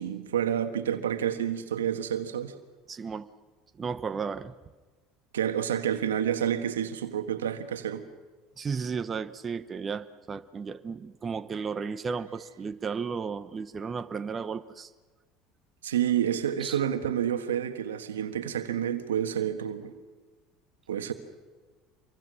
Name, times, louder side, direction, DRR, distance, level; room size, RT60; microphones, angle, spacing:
voice 1, 0.0-2.5 5.3-8.1 15.8-19.9 20.9-21.1, right 9 dB, 90° right, 9 dB, 1.4 m, -29 dB
voice 2, 2.9-3.3 3.7-4.5 8.6-14.9 16.6-16.8, right 5 dB, 30° right, 12 dB, 0.9 m, -34 dB
26.5 x 23.0 x 6.3 m, 1.3 s
hypercardioid pair, 80°, 0 cm